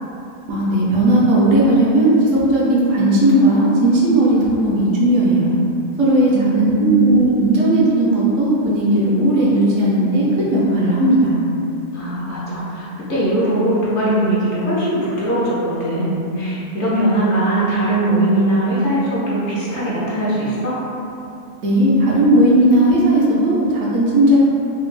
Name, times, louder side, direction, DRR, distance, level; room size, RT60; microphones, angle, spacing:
voice 1, 0.5-5.6 6.0-6.3 6.6-11.4 21.6-24.4, right 1 dB, 65° right, -7 dB, 1.0 m, -16 dB
voice 2, 6.3-7.5 11.9-20.8, right 1 dB, 60° left, -8 dB, 0.9 m, -20 dB
3.4 x 2.3 x 3.1 m, 2.8 s
omnidirectional pair, 1.4 m